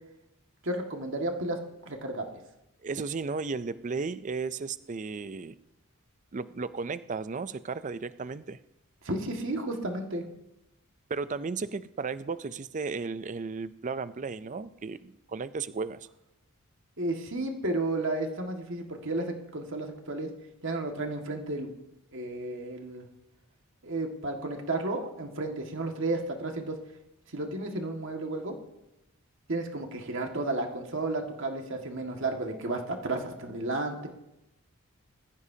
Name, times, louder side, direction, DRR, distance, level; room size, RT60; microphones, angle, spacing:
voice 1, 0.6-1.6 1.9-2.3 9.0-10.2 17.0-20.3 20.6-21.7 22.1-23.1 23.8-26.8 27.3-28.6 29.5-34.1, right 2 dB, 60° right, 2 dB, 1.8 m, -32 dB
voice 2, 2.8-5.6 6.3-8.6 11.1-16.1, right 4 dB, 35° right, 14 dB, 0.4 m, -34 dB
20.5 x 15.0 x 2.8 m, 0.90 s
head